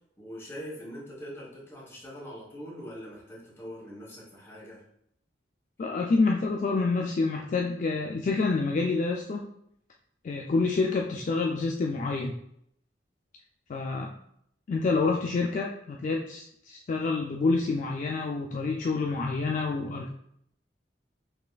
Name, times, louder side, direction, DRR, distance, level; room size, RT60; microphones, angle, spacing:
voice 1, 0.2-4.8, equal, 15° left, -5 dB, 1.4 m, -42 dB
voice 2, 5.8-9.4 10.2-12.4 13.7-14.1 14.7-20.1, left 3 dB, 45° left, 1 dB, 0.3 m, -27 dB
5.5 x 3.1 x 2.3 m, 0.72 s
head